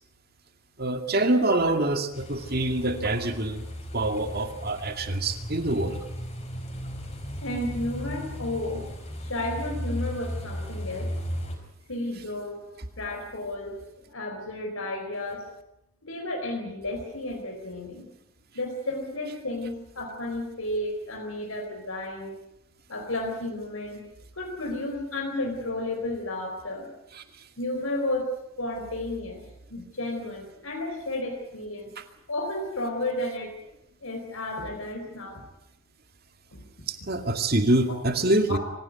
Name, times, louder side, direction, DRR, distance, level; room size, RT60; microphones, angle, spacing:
voice 1, 0.8-3.7 3.9-6.0 27.1-27.2 32.0-32.1 36.9-38.6, right 2 dB, 45° right, 7 dB, 2.3 m, -25 dB
sound 1, 2.1-11.6, equal, 30° left, 5.0 m, -36 dB
voice 2, 7.4-8.9 9.2-11.1 11.9-12.6 13.0-13.8 14.1-15.5 16.0-18.1 18.5-22.3 22.9-24.1 24.4-26.9 27.6-28.3 28.6-29.4 29.7-31.9 32.3-33.6 34.0-35.4 36.5-36.6 37.9-38.0 38.5-38.6, left 1 dB, 80° left, 3 dB, 4.2 m, -32 dB
25.5 x 16.5 x 9.5 m, 0.86 s
head